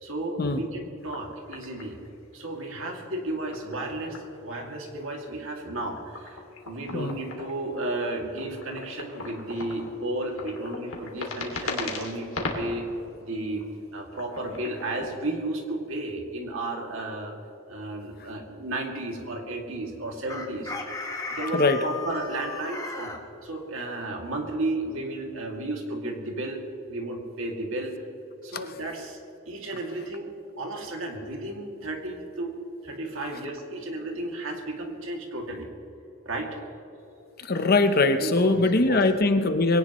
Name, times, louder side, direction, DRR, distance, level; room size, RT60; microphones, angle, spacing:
voice 1, 0.0-2.0 2.3-6.4 6.6-12.9 13.2-13.6 13.9-17.3 17.7-20.7 21.3-23.1 23.4-26.6 26.9-27.9 28.4-29.2 29.5-30.3 30.6-32.5 32.8-35.7 36.3-36.6 38.2-39.0, right 2 dB, 60° right, 1 dB, 2.5 m, -33 dB
sound 1, 1.0-2.3 3.2-4.6 4.8-12.8 13.4-15.1, left 3 dB, 70° left, 2.6 m, -38 dB
Chicken rooster, 20.3-23.2, left 3 dB, 15° left, 1.3 m, -35 dB
voice 2, 21.5-21.8 37.4-39.8, left 3 dB, 45° left, 8 dB, 0.9 m, -22 dB
22.5 x 18.0 x 3.1 m, 2.9 s
head